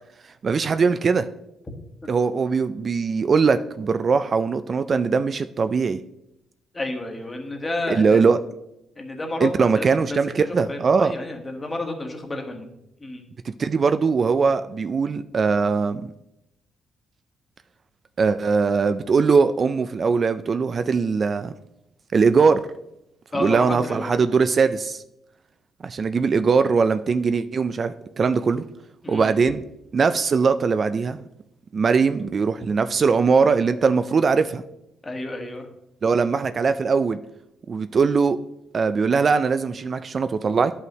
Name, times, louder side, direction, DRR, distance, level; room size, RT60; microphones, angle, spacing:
voice 1, 0.4-1.3 2.1-6.0 7.9-8.4 9.4-11.1 13.6-16.1 18.2-21.5 22.1-22.6 23.4-25.0 25.8-28.6 29.1-29.6 29.9-31.2 31.7-34.6 36.0-37.2 37.7-38.4 38.7-40.7, right 5 dB, 45° right, 11 dB, 0.3 m, -21 dB
voice 2, 6.7-8.2 9.0-12.7 13.0-13.2 23.3-24.2 29.0-29.4 35.0-35.6, left 2 dB, 20° left, 3 dB, 1.4 m, -31 dB
11.0 x 5.5 x 3.1 m, 0.85 s
cardioid pair, 90°, 0 cm